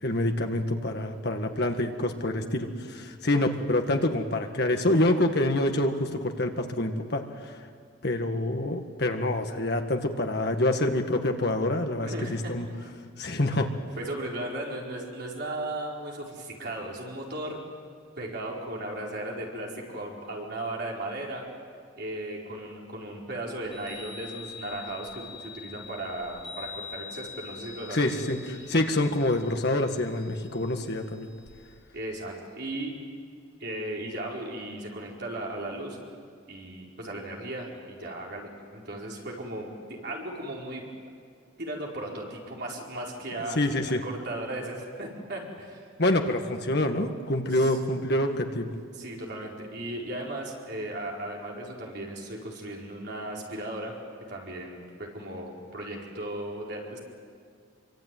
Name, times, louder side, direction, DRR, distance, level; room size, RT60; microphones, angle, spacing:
voice 1, 0.0-7.7 8.0-12.7 13.2-13.7 27.9-31.3 43.6-44.0 46.0-48.7, left 1 dB, 55° left, 5 dB, 1.9 m, -26 dB
voice 2, 12.0-12.4 14.0-17.6 18.2-21.4 22.0-28.3 28.6-28.7 31.9-32.9 33.6-36.0 36.5-40.8 41.6-43.6 44.0-45.8 47.5-47.7 48.9-53.9 54.3-57.0, right 1 dB, 55° right, -2 dB, 4.8 m, -36 dB
Chime, 23.6-31.7, left 5 dB, ahead, 6.9 m, -45 dB
26.0 x 24.5 x 9.3 m, 2.1 s
head